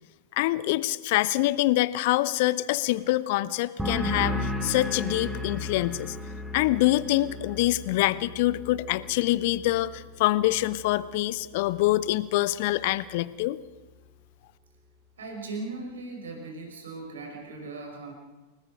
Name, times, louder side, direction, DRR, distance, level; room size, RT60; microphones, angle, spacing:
voice 1, 0.4-6.2 6.5-13.6, left 17 dB, 50° left, 18 dB, 0.8 m, -25 dB
sound 1, 3.8-11.2 11.5-12.1, left 1 dB, 5° right, 2.5 m, -35 dB
voice 2, 15.2-18.1, right 3 dB, 65° right, 2 dB, 5.6 m, -38 dB
29.5 x 19.5 x 5.2 m, 1.2 s
figure-of-eight pair, 90°, 0 cm